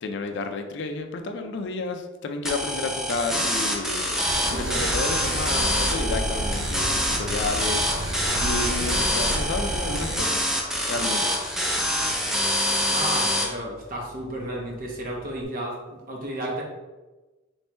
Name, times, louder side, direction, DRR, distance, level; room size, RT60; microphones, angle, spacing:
voice 1, 0.0-4.2 4.5-7.9 8.4-10.6 10.8-11.3, left 3 dB, 65° left, 6 dB, 0.4 m, -31 dB
sound 1, 2.5-13.5, equal, 5° right, 0.5 m, -26 dB
sound 2, 4.2-10.2, right 1 dB, 80° right, 0.5 m, -31 dB
voice 2, 4.3-4.8 8.3-8.8 12.8-16.6, right 1 dB, 45° right, -1 dB, 0.8 m, -33 dB
4.3 x 3.1 x 2.2 m, 1.2 s
head